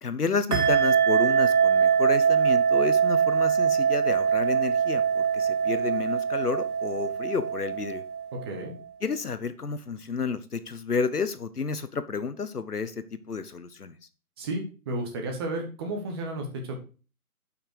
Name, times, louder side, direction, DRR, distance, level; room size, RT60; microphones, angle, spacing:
voice 1, 0.0-8.0 9.0-14.0, left 5 dB, 85° left, 12 dB, 1.1 m, -31 dB
sound 1, 0.5-8.6, right 7 dB, 85° right, 1.7 m, -23 dB
voice 2, 8.4-8.7 14.4-16.7, right 1 dB, 15° right, 2 dB, 1.1 m, -32 dB
8.6 x 5.7 x 4.6 m, 0.35 s
figure-of-eight pair, 145°, 45 cm